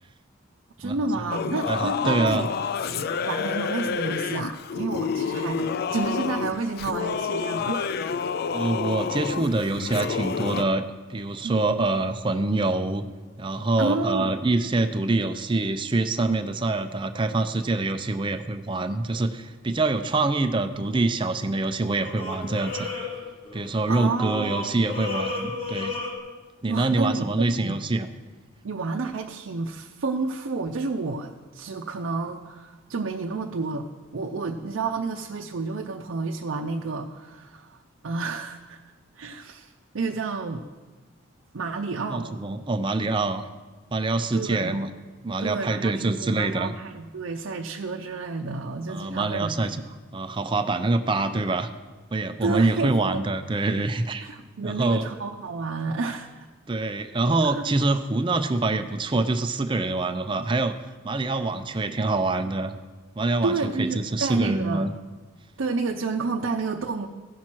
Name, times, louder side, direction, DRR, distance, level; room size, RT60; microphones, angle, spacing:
voice 1, 0.8-2.6 2.9-7.8 11.4-11.9 13.8-14.3 23.9-24.8 26.7-27.7 28.6-37.8 38.0-38.8 39.2-40.7 41.5-42.3 44.3-44.8 45.4-49.9 52.4-53.2 54.2-56.3 57.5-57.6 63.4-64.9 65.6-67.1, right 3 dB, 75° right, 1 dB, 0.6 m, -30 dB
Singing / Musical instrument, 1.3-10.7, left 6 dB, 50° left, 0.3 m, -29 dB
voice 2, 1.7-2.5 8.5-10.8 11.1-13.0 13.4-22.9 23.5-25.9 26.6-28.1 42.1-43.5 43.9-44.9 45.2-46.7 48.9-49.8 50.1-51.7 52.1-54.2 54.6-55.1 56.7-60.8 61.0-62.7 63.2-64.9, right 2 dB, 25° right, 8 dB, 0.5 m, -25 dB
sound 1, 19.1-19.3 21.9-23.8 24.2-26.2, left 3 dB, 30° left, 1.3 m, -33 dB
15.5 x 6.0 x 4.5 m, 1.3 s
head